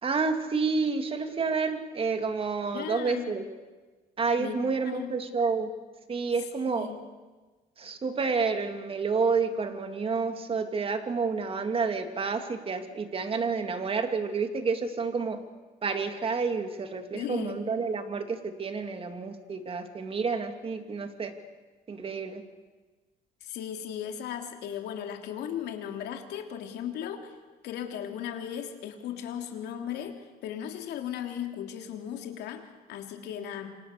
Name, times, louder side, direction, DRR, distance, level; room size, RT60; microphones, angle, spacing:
voice 1, 0.0-3.4 4.2-5.7 6.1-6.9 7.8-15.4 15.8-21.3 21.9-22.4, right 4 dB, 35° right, 6 dB, 2.8 m, -29 dB
voice 2, 2.7-3.3 4.4-4.6 4.8-5.1 6.7-7.0 17.1-17.6 23.4-27.3 27.6-33.7, left 9 dB, 80° left, 4 dB, 3.3 m, -36 dB
28.5 x 25.0 x 6.9 m, 1.3 s
cardioid pair, 110°, 17 cm